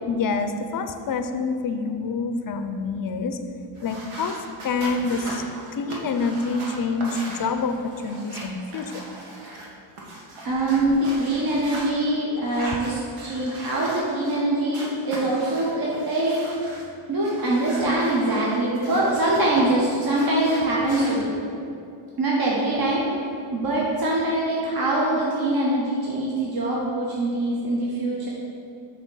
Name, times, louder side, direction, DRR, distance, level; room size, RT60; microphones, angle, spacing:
voice 1, 0.1-3.4 3.8-4.4 4.6-5.4 5.7-9.0, left 4 dB, 45° left, 8 dB, 0.5 m, -27 dB
sound 1, 3.8-9.7 10.0-11.9 12.4-14.4 14.7-16.9 17.2-19.6 19.9-21.2, right 2 dB, 85° right, 1.2 m, -39 dB
voice 2, 10.4-16.5 17.1-21.3 22.2-23.0 23.5-28.3, right 1 dB, 45° right, -4 dB, 1.0 m, -23 dB
6.2 x 2.9 x 5.4 m, 2.5 s
cardioid pair, 70°, 50 cm